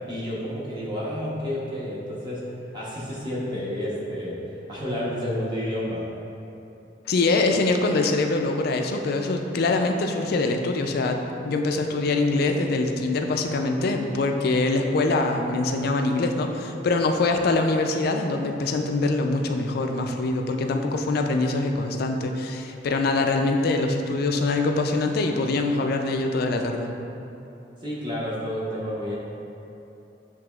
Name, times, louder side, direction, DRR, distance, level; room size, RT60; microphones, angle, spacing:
voice 1, 0.1-2.4 2.7-4.4 4.7-6.0 27.8-29.2, equal, 25° right, -7 dB, 0.8 m, -30 dB
voice 2, 7.1-26.9, left 3 dB, 55° left, 4 dB, 0.3 m, -24 dB
7.5 x 2.9 x 2.3 m, 2.9 s
head